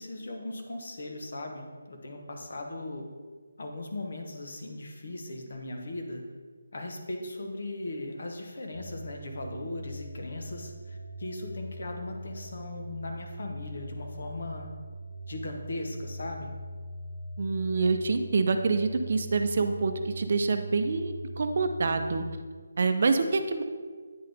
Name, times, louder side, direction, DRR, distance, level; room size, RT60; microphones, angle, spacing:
voice 1, 0.0-3.1 3.6-6.2 6.7-14.7 15.3-16.5, left 2 dB, 65° left, 3 dB, 1.1 m, -38 dB
sound 1, 8.7-22.4, right 1 dB, 85° left, 1.1 m, -41 dB
voice 2, 17.4-22.2 22.8-23.6, right 4 dB, 50° right, 7 dB, 0.5 m, -26 dB
9.5 x 3.8 x 3.5 m, 1.5 s
figure-of-eight pair, 165°, 0 cm